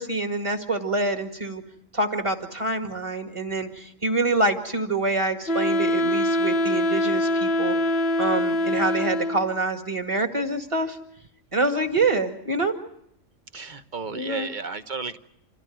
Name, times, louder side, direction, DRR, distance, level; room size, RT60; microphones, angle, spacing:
voice 1, 0.0-1.6 1.9-7.8 8.2-11.0 11.5-12.8 14.1-14.5, right 2 dB, 25° right, 5 dB, 2.1 m, -26 dB
Wind instrument woodwind instrument, 5.5-9.6, left 1 dB, 50° left, 1.3 m, -23 dB
voice 2, 13.5-15.2, right 4 dB, 40° right, 10 dB, 1.1 m, -33 dB
27.5 x 16.5 x 9.2 m, 0.74 s
omnidirectional pair, 1.4 m